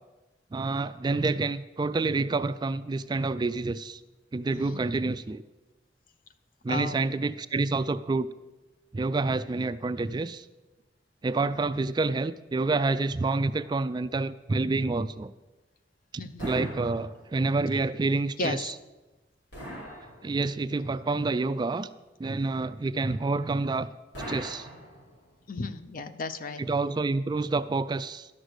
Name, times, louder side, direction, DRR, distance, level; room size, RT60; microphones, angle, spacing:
voice 1, 0.5-4.0 4.3-5.4 6.6-8.3 8.9-10.5 11.2-15.3 16.1-18.7 20.2-21.9 22.2-23.9 24.3-24.7 26.7-28.3, right 3 dB, 25° right, 13 dB, 0.3 m, -28 dB
voice 2, 4.5-4.8 6.7-7.0 16.2-16.5 17.7-17.8 18.4-18.7 25.5-26.6, left 3 dB, 50° left, 11 dB, 0.7 m, -34 dB
sound 1, 16.4-17.6 19.5-20.7 24.1-25.4, equal, 75° left, 5.2 m, -41 dB
11.5 x 6.4 x 8.0 m, 1.1 s
head